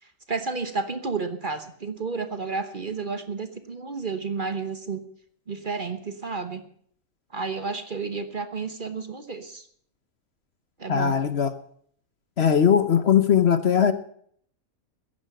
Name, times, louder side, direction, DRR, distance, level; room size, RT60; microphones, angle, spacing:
voice 1, 0.3-5.0 5.5-6.6 7.3-9.7 10.8-11.2, right 4 dB, 40° right, 9 dB, 1.2 m, -31 dB
voice 2, 10.9-11.5 12.4-13.9, left 8 dB, 50° left, 11 dB, 1.1 m, -19 dB
15.0 x 10.5 x 6.7 m, 0.62 s
omnidirectional pair, 1.5 m